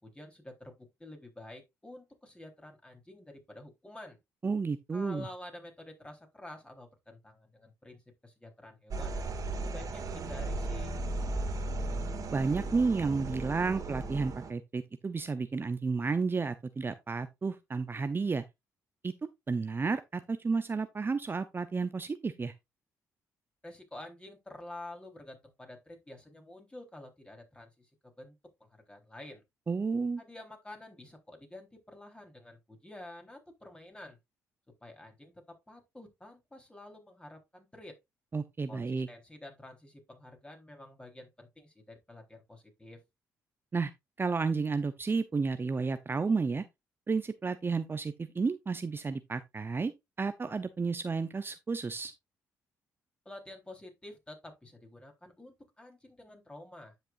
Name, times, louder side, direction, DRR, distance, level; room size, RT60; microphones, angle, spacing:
voice 1, 0.0-4.2 4.9-9.2 9.6-10.9 23.6-27.9 28.2-28.3 28.7-29.4 30.2-34.2 34.8-38.0 38.7-43.0 53.3-56.9, left 1 dB, 15° left, 3.8 m, -49 dB
voice 2, 4.4-5.3 12.3-18.4 19.0-19.1 19.5-22.5 29.7-30.2 38.3-39.1 43.7-43.9 44.2-46.6 47.1-49.9 50.2-52.1, right 4 dB, 30° right, 0.7 m, -31 dB
sound 1, 8.9-14.5, right 2 dB, 50° right, 2.2 m, -36 dB
9.9 x 6.6 x 2.5 m
hypercardioid pair, 55°, 7 cm